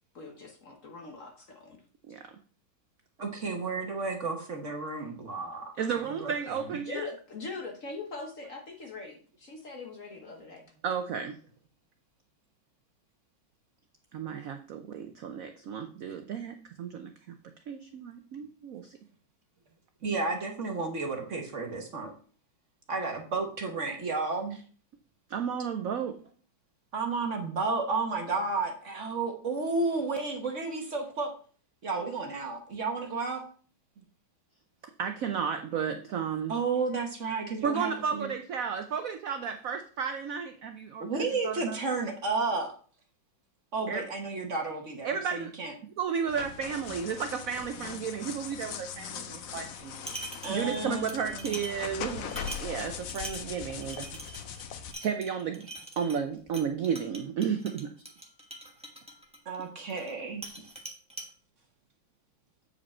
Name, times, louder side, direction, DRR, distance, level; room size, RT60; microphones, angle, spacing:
voice 1, 0.1-1.8 2.1-2.2 6.8-10.6, left 3 dB, 45° left, 2 dB, 1.3 m, -41 dB
voice 2, 3.2-6.8 20.0-22.1 22.9-24.6 26.9-31.3 31.8-33.4 36.5-38.3 41.0-42.7 43.7-45.7 50.4-51.6 59.4-60.4, right 3 dB, 45° right, 3 dB, 1.2 m, -32 dB
voice 3, 5.8-7.1 10.8-11.3 14.1-17.3 17.7-19.0 25.3-26.1 35.0-36.5 37.6-41.8 43.9-44.0 45.0-45.5 46.0-50.0 50.5-52.3 52.5-54.1 55.0-55.6 56.0-57.9, right 7 dB, 75° right, 6 dB, 0.7 m, -33 dB
sound 1, 46.3-54.9, left 7 dB, 65° left, 0.8 m, -40 dB
sound 2, 49.8-50.8 51.1-60.1 60.4-61.3, right 1 dB, 5° right, 0.7 m, -44 dB
8.3 x 5.1 x 4.3 m, 0.42 s
omnidirectional pair, 2.2 m